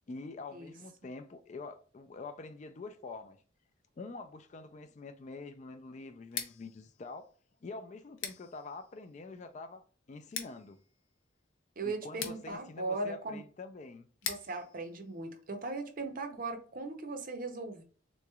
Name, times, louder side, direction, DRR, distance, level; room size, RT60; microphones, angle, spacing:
voice 1, 0.1-3.4 4.0-7.3 7.6-10.8 11.8-14.1, left 3 dB, 35° left, 0.3 m, -46 dB
Scissors, 6.2-16.0, left 7 dB, 75° left, 0.6 m, -46 dB
voice 2, 11.8-13.4 14.3-17.8, right 3 dB, 45° right, 0.6 m, -38 dB
3.7 x 3.0 x 2.3 m
head